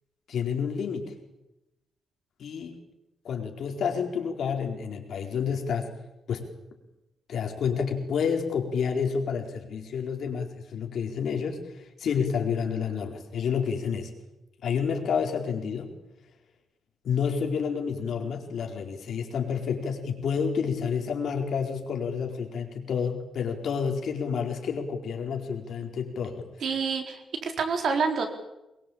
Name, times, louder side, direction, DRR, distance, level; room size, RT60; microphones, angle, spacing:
voice 1, 0.3-1.1 2.4-2.8 3.2-5.9 6.3-6.5 7.3-11.7 12.0-14.1 14.6-15.9 17.0-26.5, left 6 dB, 65° left, 3 dB, 4.4 m, -29 dB
voice 2, 26.6-28.3, right 5 dB, 60° right, 4 dB, 4.2 m, -27 dB
24.0 x 22.0 x 8.8 m, 0.94 s
wide cardioid pair, 150°, 0 cm